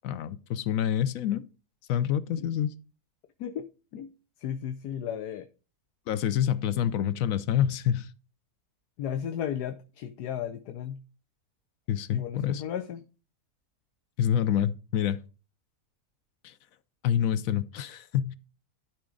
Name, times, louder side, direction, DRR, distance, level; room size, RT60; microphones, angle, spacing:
voice 1, 0.0-1.4 1.9-2.7 6.1-8.1 11.9-12.6 14.2-15.2 16.4-16.5 17.0-18.3, left 10 dB, 65° left, 1.0 m, -27 dB
voice 2, 4.4-5.5 9.0-11.0 12.1-13.0, left 9 dB, 85° left, 1.3 m, -34 dB
12.0 x 5.0 x 3.8 m
omnidirectional pair, 1.7 m